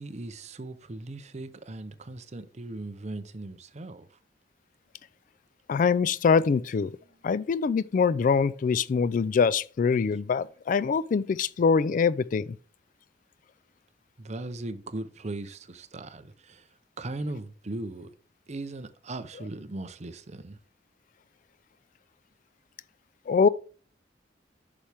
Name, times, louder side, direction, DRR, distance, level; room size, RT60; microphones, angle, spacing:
voice 1, 0.0-4.2 10.1-10.2 14.2-16.7 17.0-18.1 18.5-20.6, right 2 dB, 40° right, 0.7 m, -38 dB
voice 2, 5.7-6.9 7.2-12.5 23.3-23.5, left 5 dB, 50° left, 0.3 m, -24 dB
8.6 x 6.0 x 3.4 m
head